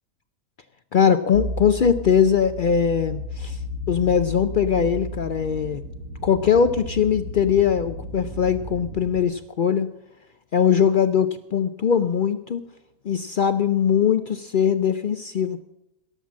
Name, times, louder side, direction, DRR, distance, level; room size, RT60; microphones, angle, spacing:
voice 1, 0.9-3.6 3.9-5.8 6.2-9.9 10.5-12.6 13.0-15.6, left 7 dB, 75° left, 11 dB, 0.4 m, -21 dB
sound 1, 1.3-9.2, equal, 65° right, 1.4 m, -34 dB
17.0 x 7.4 x 7.4 m, 0.85 s
omnidirectional pair, 1.5 m